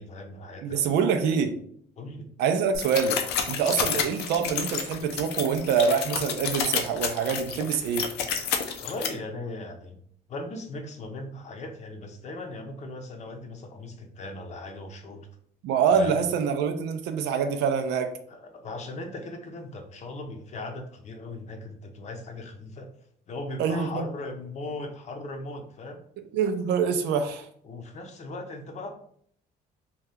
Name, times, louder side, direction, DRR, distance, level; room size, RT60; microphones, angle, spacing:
voice 1, 0.0-0.8 2.0-2.3 3.7-4.0 8.8-10.0 10.3-15.3 15.9-16.1 18.3-22.9 23.3-26.0 27.6-28.9, left 2 dB, 45° left, 4 dB, 0.6 m, -38 dB
voice 2, 0.6-1.6 2.4-3.2 3.5-8.1 15.6-18.2 23.6-24.1 26.3-27.5, right 6 dB, 85° right, 7 dB, 0.5 m, -25 dB
sound 1, 2.7-9.1, left 7 dB, 90° left, 0.5 m, -30 dB
2.7 x 2.3 x 3.4 m, 0.63 s
cardioid pair, 110°, 17 cm